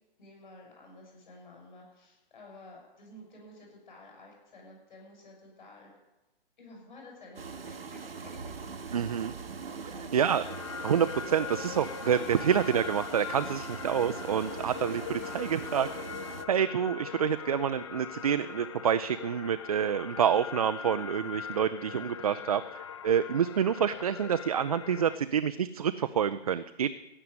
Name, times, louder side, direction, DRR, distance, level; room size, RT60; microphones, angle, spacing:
voice 1, 0.2-6.0 6.6-8.4 9.7-10.1 22.2-22.5, left 1 dB, 50° left, 0 dB, 6.8 m, -52 dB
sound 1, 7.4-16.5, right 5 dB, 70° right, 1.0 m, -42 dB
voice 2, 8.9-9.3 10.1-10.4 10.8-15.9 16.5-22.6 23.0-26.9, right 8 dB, 40° right, 11 dB, 0.5 m, -28 dB
sound 2, 10.4-25.2, left 8 dB, 30° left, 0.5 m, -41 dB
16.0 x 6.7 x 9.7 m, 1.0 s
figure-of-eight pair, 130°, 30 cm